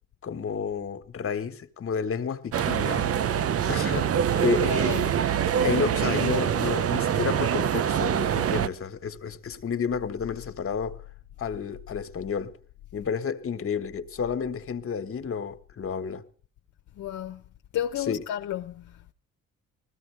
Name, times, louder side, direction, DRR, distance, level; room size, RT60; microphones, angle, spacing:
voice 1, 0.2-3.1 3.7-4.7 5.6-11.0 11.4-12.6 12.9-16.2 18.0-18.2, left 6 dB, 45° left, 1.5 m, -31 dB
sound 1, 2.5-8.7, right 9 dB, 50° right, 0.7 m, -25 dB
voice 2, 4.3-5.2 17.0-17.4 17.7-19.1, left 10 dB, 70° left, 0.8 m, -33 dB
20.0 x 15.0 x 3.4 m
cardioid pair, 90°, 30 cm